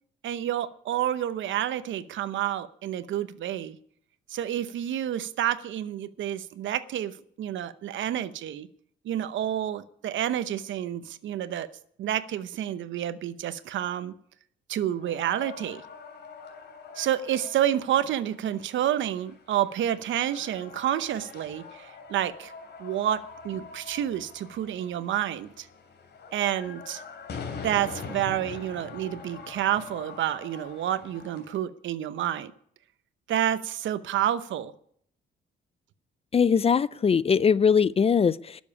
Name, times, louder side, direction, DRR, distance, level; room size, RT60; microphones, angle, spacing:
voice 1, 0.2-3.8 4.3-8.7 9.0-11.7 12.0-14.1 14.7-15.8 17.0-22.5 22.8-25.7 26.3-27.0 27.6-32.5 33.3-34.7, right 11 dB, 75° right, 0.8 m, -29 dB
sound 1, 15.0-31.6, left 5 dB, 55° left, 3.1 m, -44 dB
voice 2, 36.3-38.6, left 6 dB, 30° left, 0.4 m, -21 dB
12.0 x 7.3 x 9.9 m
cardioid pair, 90°, 20 cm